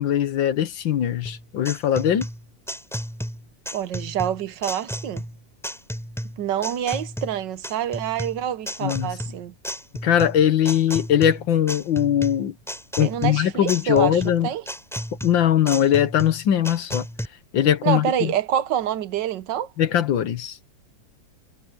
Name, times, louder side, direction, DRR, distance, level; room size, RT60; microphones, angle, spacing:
voice 1, 0.0-2.3 8.8-9.1 10.0-12.5 13.0-14.5 15.2-17.1 17.5-18.3 19.8-20.6, left 10 dB, 75° left, 1.8 m, -21 dB
sound 1, 1.3-17.3, equal, ahead, 4.1 m, -33 dB
voice 2, 3.7-5.2 6.4-9.5 13.0-14.6 17.8-19.7, right 10 dB, 70° right, 1.5 m, -27 dB
omnidirectional pair, 2.1 m